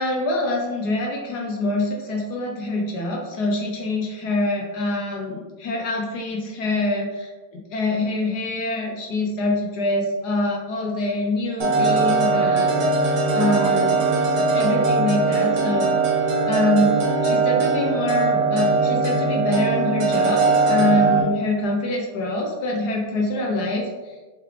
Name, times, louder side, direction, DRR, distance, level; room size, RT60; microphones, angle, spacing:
voice 1, 0.0-13.0 13.3-14.0 14.3-16.0 16.5-17.0 17.2-20.4 20.7-24.2, left 2 dB, 70° left, 0 dB, 1.0 m, -25 dB
sound 1, 11.6-21.2, right 3 dB, 65° right, 1.5 m, -20 dB
4.7 x 3.3 x 3.1 m, 1.3 s
omnidirectional pair, 2.3 m